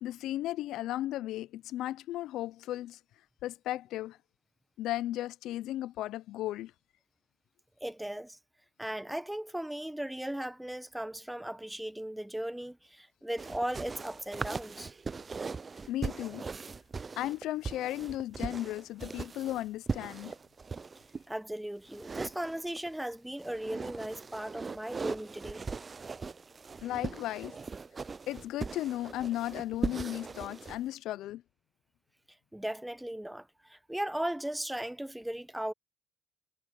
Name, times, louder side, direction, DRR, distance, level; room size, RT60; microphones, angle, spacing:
voice 1, 0.0-3.0 3.4-4.2 4.8-6.7 15.9-16.5 17.2-20.3 26.8-27.6 28.3-31.4, left 14 dB, 70° left, 0.4 m, -35 dB
voice 2, 7.8-8.4 8.8-14.9 21.3-25.7 32.5-35.7, right 1 dB, 5° right, 1.0 m, -37 dB
sound 1, 13.4-21.2 21.9-23.0 23.4-30.8, right 4 dB, 25° right, 0.5 m, -39 dB
cardioid pair, 95°, 0 cm